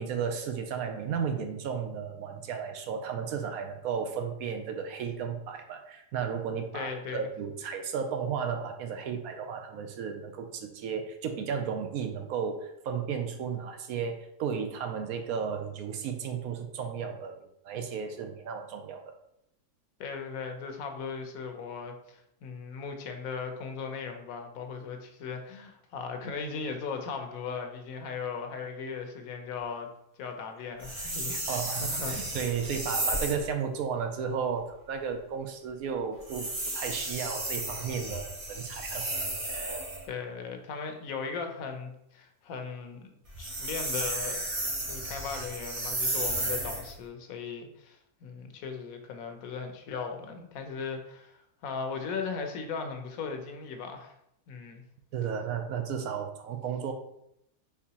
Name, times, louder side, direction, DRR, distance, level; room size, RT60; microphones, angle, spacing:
voice 1, 0.0-17.4 17.6-19.1 31.5-39.1 39.5-39.8 55.1-56.9, right 6 dB, 80° right, 5 dB, 1.1 m, -34 dB
voice 2, 6.7-7.3 20.0-29.9 30.2-32.6 40.1-43.1 43.4-44.4 44.9-54.1 54.5-54.8, left 5 dB, 75° left, 5 dB, 1.1 m, -38 dB
sound 1, 30.8-33.5 36.2-40.0 43.2-46.9, right 1 dB, 40° right, 1.6 m, -33 dB
4.6 x 3.5 x 2.8 m, 0.77 s
omnidirectional pair, 1.5 m